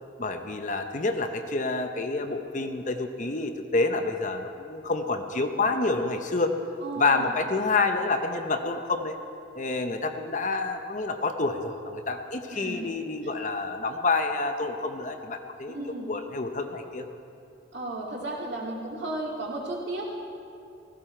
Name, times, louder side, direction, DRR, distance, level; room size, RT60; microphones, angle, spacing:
voice 1, 0.2-6.5 7.0-9.2 9.5-15.7 16.1-17.0, left 3 dB, 40° left, 6 dB, 0.7 m, -28 dB
voice 2, 6.8-7.3 12.5-12.9 15.7-16.1 17.7-20.1, right 2 dB, 60° right, -3 dB, 2.5 m, -34 dB
16.0 x 14.5 x 4.5 m, 2.6 s
head